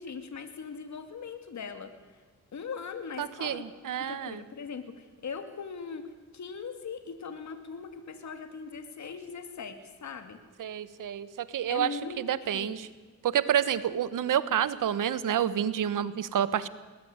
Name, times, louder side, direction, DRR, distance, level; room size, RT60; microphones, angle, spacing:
voice 1, 0.0-2.2 2.5-3.6 4.0-10.4 11.7-12.2 12.5-12.8, left 5 dB, 65° left, 8 dB, 2.6 m, -40 dB
voice 2, 3.2-4.4 10.6-11.9 12.2-12.9 13.2-16.7, right 9 dB, 85° right, 15 dB, 1.3 m, -29 dB
21.5 x 19.5 x 9.7 m, 1.3 s
cardioid pair, 90°, 31 cm